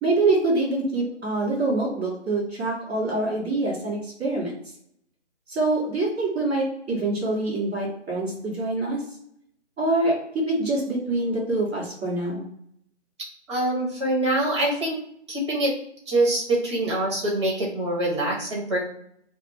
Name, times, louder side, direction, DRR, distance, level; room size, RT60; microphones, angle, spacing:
voice 1, 0.0-4.6 5.5-9.0 9.8-12.4, right 2 dB, 5° right, -17 dB, 0.8 m, -25 dB
voice 2, 13.5-15.0 15.3-15.7 16.1-18.8, right 1 dB, 25° right, -3 dB, 1.2 m, -24 dB
5.0 x 2.1 x 2.6 m, 0.71 s
figure-of-eight pair, 150°, 36 cm